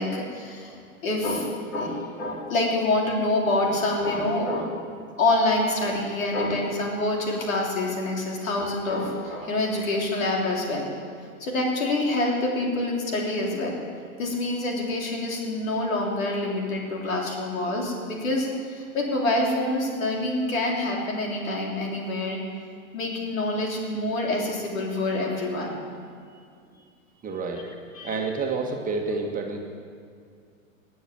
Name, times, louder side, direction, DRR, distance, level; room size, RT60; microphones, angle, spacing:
voice 1, 0.0-4.8 5.2-10.9 11.4-13.8 14.2-22.4 22.9-25.7 28.0-28.2, left 2 dB, 70° left, -1 dB, 3.5 m, -26 dB
voice 2, 27.2-27.7 28.0-29.7, right 4 dB, 20° right, 1 dB, 1.6 m, -29 dB
18.5 x 7.1 x 7.6 m, 2.3 s
hypercardioid pair, 110°, 41 cm